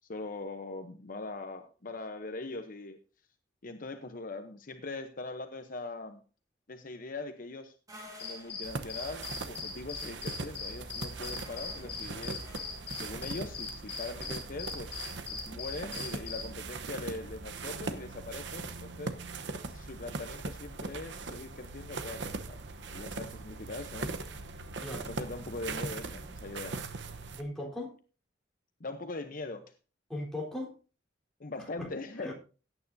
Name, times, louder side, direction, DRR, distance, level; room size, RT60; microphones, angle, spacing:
voice 1, 0.1-3.0 3.6-6.2 6.7-7.7 8.2-12.5 12.9-19.1 19.7-22.6 22.9-24.1 24.9-26.8 28.8-29.7 31.4-32.3, left 2 dB, 50° left, 7 dB, 0.8 m, -41 dB
sound 1, 7.9-13.0, left 1 dB, 20° right, 3.8 m, -54 dB
sound 2, 8.2-16.4, left 5 dB, 35° left, 4.6 m, -40 dB
sound 3, 8.6-27.4, right 3 dB, 75° right, 1.0 m, -40 dB
voice 2, 24.8-25.1 27.4-28.0 30.1-30.8 31.6-31.9 32.2-32.3, left 1 dB, 5° left, -3 dB, 3.8 m, -38 dB
17.0 x 9.2 x 2.7 m, 0.35 s
head